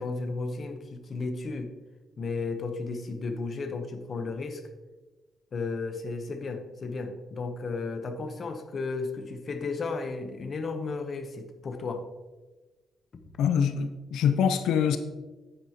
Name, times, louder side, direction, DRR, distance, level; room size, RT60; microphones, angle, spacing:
voice 1, 0.0-1.7 2.2-4.6 5.5-12.1, left 3 dB, 35° left, 7 dB, 0.9 m, -34 dB
voice 2, 13.4-15.0, left 7 dB, 85° left, 9 dB, 0.6 m, -24 dB
9.6 x 9.6 x 2.9 m, 1.2 s
cardioid pair, 155°, 0 cm